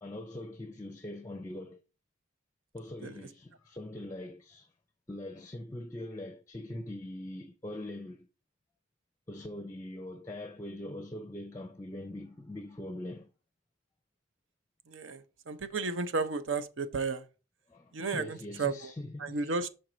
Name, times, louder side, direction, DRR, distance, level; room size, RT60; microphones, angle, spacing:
voice 1, 0.0-1.8 2.7-4.7 5.1-8.3 9.3-13.3 17.7-19.7, left 1 dB, 15° left, 0.5 m, -42 dB
voice 2, 14.9-17.2 17.9-18.7 19.2-19.7, right 4 dB, 75° right, 0.6 m, -33 dB
6.4 x 4.6 x 3.9 m
head